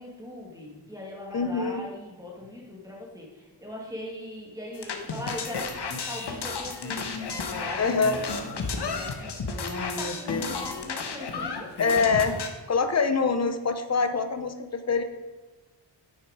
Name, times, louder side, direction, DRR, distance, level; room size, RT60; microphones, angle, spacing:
voice 1, 0.0-7.0 7.3-11.7, left 1 dB, 10° right, -3 dB, 1.8 m, -40 dB
voice 2, 1.3-1.9 7.8-8.2 9.6-10.7 11.8-12.4 12.7-15.0, left 4 dB, 40° left, 9 dB, 0.8 m, -25 dB
sound 1, 4.7-12.5, left 4 dB, 70° left, 1.1 m, -33 dB
9.7 x 6.4 x 4.9 m, 1.2 s
wide cardioid pair, 165°, 42 cm